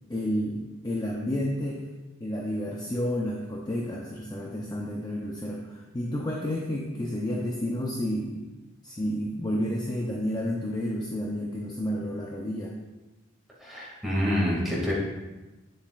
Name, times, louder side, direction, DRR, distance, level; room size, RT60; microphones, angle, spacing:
voice 1, 0.1-1.9 2.2-8.4 8.8-12.7, equal, 20° left, -2 dB, 0.6 m, -30 dB
voice 2, 13.6-14.9, equal, ahead, -7 dB, 2.2 m, -27 dB
9.4 x 7.2 x 2.4 m, 1.1 s
head